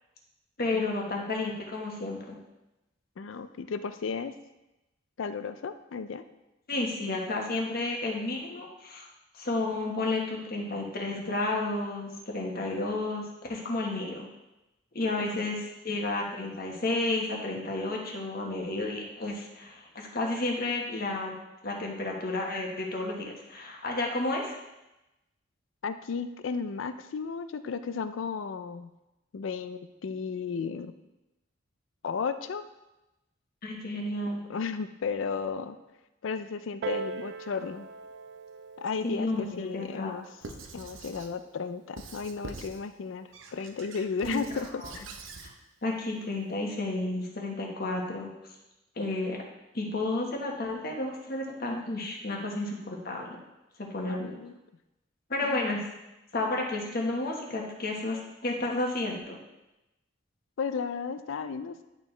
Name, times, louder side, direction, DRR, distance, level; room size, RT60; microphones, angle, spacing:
voice 1, 0.6-2.4 6.7-9.1 9.3-14.3 14.9-21.4 21.6-24.6 33.6-34.4 39.0-40.1 44.2-44.4 44.8-44.9 45.8-48.3 49.0-49.4 49.7-53.4 53.8-54.4 55.3-55.8 56.3-59.4, left 2 dB, 55° left, 0 dB, 1.3 m, -31 dB
voice 2, 3.2-4.3 5.2-6.2 15.2-15.4 25.8-28.9 29.3-30.9 32.0-32.6 34.5-35.8 36.2-37.9 38.8-40.3 40.7-45.1 54.1-54.5 55.4-55.7 60.6-61.8, left 5 dB, 80° left, 11 dB, 0.4 m, -34 dB
Piano, 36.8-42.0 42.8-42.9, right 5 dB, 60° right, 0.3 m, -42 dB
Squeak / Writing, 40.4-41.3 42.0-42.8 43.3-45.5, right 3 dB, 85° right, 0.7 m, -44 dB
10.5 x 4.6 x 3.3 m, 0.96 s
head